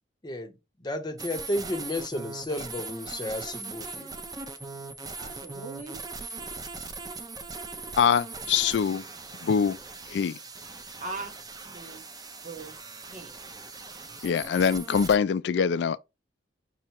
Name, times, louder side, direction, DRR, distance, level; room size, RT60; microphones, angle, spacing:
voice 1, 0.2-4.1 8.5-8.6, left 1 dB, 20° left, 0.6 m, -33 dB
sound 1, 1.2-15.2, right 3 dB, 20° right, 0.5 m, -40 dB
voice 2, 5.2-6.0 11.0-12.0 12.4-12.7 13.1-13.4, right 3 dB, 40° right, 1.0 m, -40 dB
voice 3, 8.0-9.0 9.4-9.8 10.1-10.4 14.2-16.0, left 7 dB, 65° left, 0.3 m, -24 dB
5.5 x 2.0 x 4.3 m
head